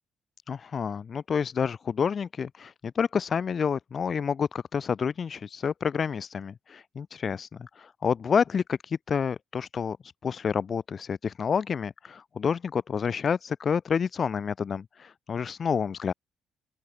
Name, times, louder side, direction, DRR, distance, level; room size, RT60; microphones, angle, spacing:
voice 1, 0.5-16.1, left 6 dB, 45° left, 1.3 m, -29 dB
open air
cardioid pair, 90°, 0 cm